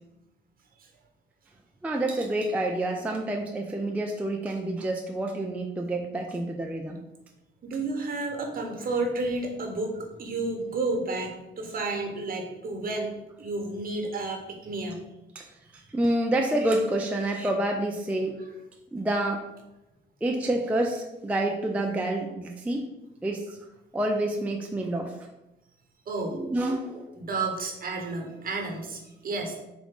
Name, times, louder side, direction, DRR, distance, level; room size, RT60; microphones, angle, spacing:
voice 1, 1.8-7.0 15.4-15.5 15.9-18.4 18.9-19.5 20.2-22.9 23.2-23.6 23.9-25.2 26.3-27.1, right 1 dB, 5° right, 2 dB, 0.3 m, -28 dB
voice 2, 7.6-15.0 26.1-26.4 27.1-29.6, right 3 dB, 45° right, 2 dB, 0.9 m, -31 dB
3.9 x 2.5 x 3.5 m, 0.97 s
cardioid pair, 90°, 20 cm